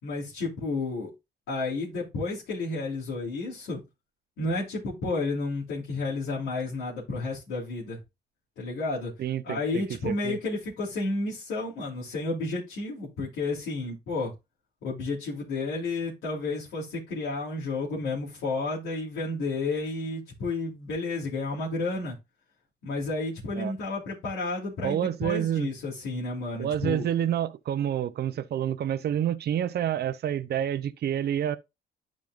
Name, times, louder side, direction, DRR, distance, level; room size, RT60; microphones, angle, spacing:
voice 1, 0.0-1.1 1.5-3.8 4.4-8.0 8.6-9.1 9.4-14.3 14.8-22.2 22.8-27.0, left 3 dB, 90° left, 3.2 m, -31 dB
voice 2, 9.2-10.4 23.6-23.7 24.8-25.7 26.6-31.6, right 10 dB, 55° right, 0.6 m, -28 dB
10.5 x 5.2 x 2.5 m
cardioid pair, 90°, 20 cm